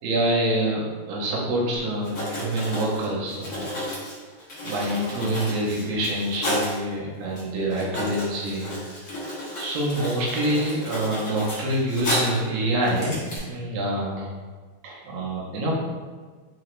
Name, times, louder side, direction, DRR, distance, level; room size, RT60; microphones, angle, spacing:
voice 1, 0.0-3.7 4.6-8.7 9.6-14.3 14.8-15.7, right 1 dB, 70° right, -4 dB, 1.7 m, -26 dB
Writing, 2.0-6.8 7.4-7.5 7.7-12.5 12.8-13.4, left 1 dB, 60° left, 1.0 m, -32 dB
4.8 x 2.2 x 2.9 m, 1.5 s
omnidirectional pair, 3.4 m